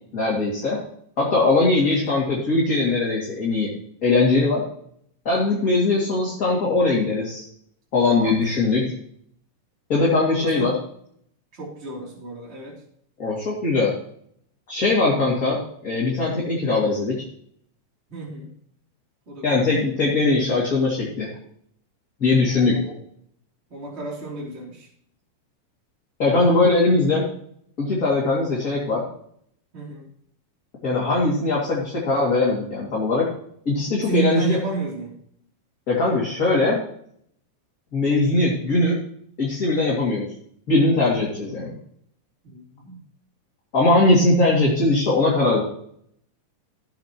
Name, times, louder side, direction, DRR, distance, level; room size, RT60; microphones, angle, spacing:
voice 1, 0.1-0.8 1.2-3.7 4.0-4.6 5.2-7.5 7.9-8.9 9.9-10.7 13.2-13.9 14.7-15.6 15.8-17.1 19.4-21.3 22.2-22.8 26.2-27.3 27.8-29.0 30.8-33.3 33.7-34.6 35.9-36.8 37.9-39.0 39.4-40.3 40.7-41.7 43.7-45.6, left 2 dB, 25° left, -5 dB, 2.6 m, -20 dB
voice 2, 8.1-8.7 10.4-10.8 11.5-12.8 18.1-18.5 19.3-19.7 22.4-23.0 23.7-24.9 29.7-30.1 33.9-35.2 42.5-43.0, right 5 dB, 20° right, -3 dB, 3.1 m, -32 dB
15.5 x 7.9 x 3.1 m, 0.66 s
omnidirectional pair, 4.0 m